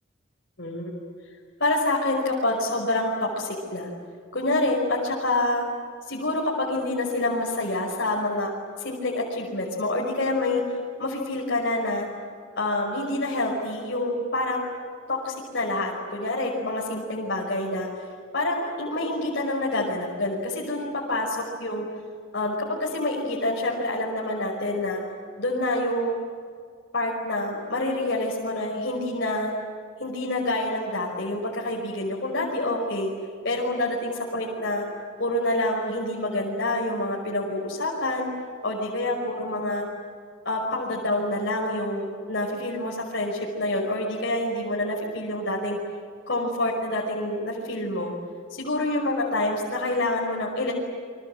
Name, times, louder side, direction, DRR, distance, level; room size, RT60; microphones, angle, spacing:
voice 1, 0.6-0.9 1.6-3.9 4.3-5.6 6.1-8.5 8.8-10.6 11.0-12.1 12.6-14.7 15.1-17.9 18.3-21.9 22.3-25.0 25.4-26.2 26.9-29.5 30.0-33.1 33.4-34.9 35.2-38.3 38.6-39.9 40.4-45.8 46.3-48.1 48.5-50.7, left 2 dB, 55° left, -4 dB, 5.5 m, -27 dB
30.0 x 25.0 x 8.0 m, 2.1 s
head